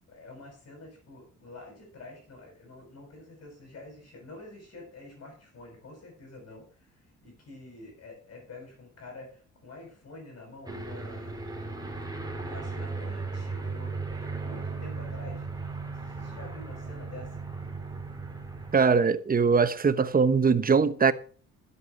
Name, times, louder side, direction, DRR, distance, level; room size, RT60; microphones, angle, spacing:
voice 1, 0.1-11.4 11.9-15.5 15.9-17.4, left 2 dB, 50° left, 7.2 m, -48 dB
Aircraft, 10.7-18.8, right 3 dB, 15° right, 3.2 m, -36 dB
voice 2, 18.7-21.1, right 5 dB, 30° right, 1.1 m, -22 dB
11.5 x 8.2 x 6.1 m
cardioid pair, 90°, 30 cm